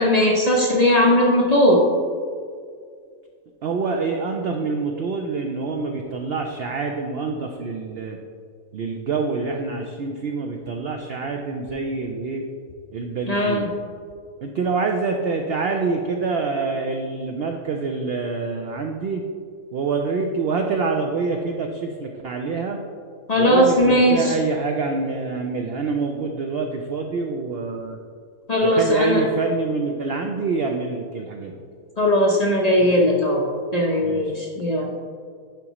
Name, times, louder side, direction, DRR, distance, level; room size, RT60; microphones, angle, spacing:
voice 1, 0.0-1.8 13.3-13.6 23.3-24.4 28.5-29.2 32.0-34.9, left 1 dB, 45° left, -1 dB, 0.5 m, -18 dB
voice 2, 3.6-8.2 8.7-12.4 12.9-13.7 14.4-19.2 19.7-22.8 23.4-28.0 28.6-31.6 32.8-33.2 34.0-34.5, right 4 dB, 70° right, 3 dB, 0.5 m, -26 dB
10.5 x 4.8 x 3.0 m, 2.2 s
omnidirectional pair, 1.6 m